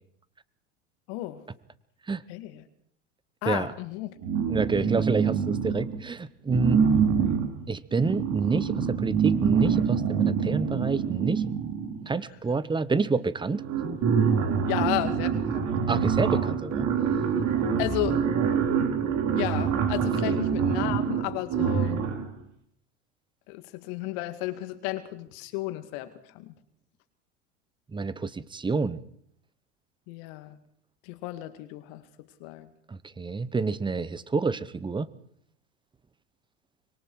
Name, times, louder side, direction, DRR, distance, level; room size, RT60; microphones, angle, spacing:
voice 1, 1.1-1.4 2.3-2.6 3.4-4.2 4.8-5.1 14.7-15.7 17.8-18.2 19.3-22.0 23.5-26.5 30.1-30.6 31.0-32.0 32.4-32.7, left 16 dB, 60° left, 10 dB, 2.0 m, -33 dB
sound 1, 4.2-6.0 6.5-12.2 13.1-13.2 13.5-22.3, right 7 dB, 45° right, 3.9 m, -26 dB
voice 2, 4.5-6.8 7.7-11.4 12.1-13.7 15.9-16.9 20.2-20.4 27.9-29.0 32.9-35.1, right 4 dB, 10° right, 17 dB, 1.0 m, -28 dB
24.5 x 22.5 x 4.8 m, 0.67 s
hypercardioid pair, 100°, 38 cm